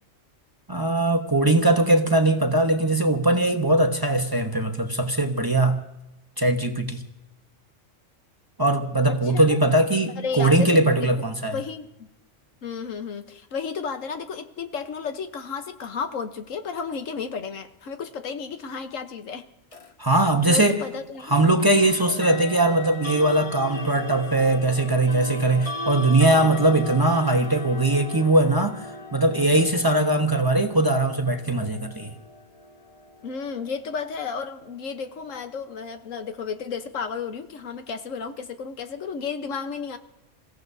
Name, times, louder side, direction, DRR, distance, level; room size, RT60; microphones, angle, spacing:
voice 1, 0.7-5.8 6.4-7.0 8.6-11.6 20.0-20.8 21.3-28.8 29.1-32.1, right 2 dB, 20° right, 0.9 m, -20 dB
voice 2, 9.1-9.6 10.2-11.1 11.5-12.1 12.6-19.5 20.5-21.6 26.3-26.9 33.2-40.0, left 5 dB, 80° left, 1.4 m, -33 dB
sound 1, 19.7-19.9 21.6-34.4, left 1 dB, 30° left, 1.0 m, -37 dB
27.5 x 16.0 x 2.7 m
omnidirectional pair, 1.3 m